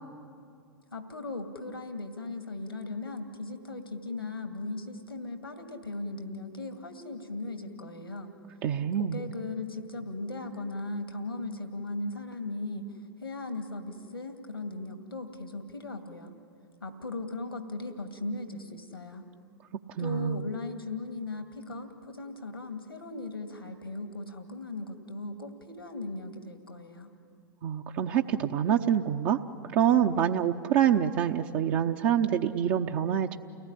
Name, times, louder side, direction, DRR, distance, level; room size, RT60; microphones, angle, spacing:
voice 1, 0.9-8.3 8.9-12.8 13.2-16.3 16.8-19.2 20.0-27.1, left 2 dB, 85° left, 6 dB, 2.2 m, -38 dB
voice 2, 8.6-9.2 20.0-20.4 27.6-29.4 29.7-33.4, right 9 dB, 45° right, 3 dB, 0.9 m, -26 dB
30.0 x 18.5 x 10.0 m, 2.4 s
figure-of-eight pair, 95°, 12 cm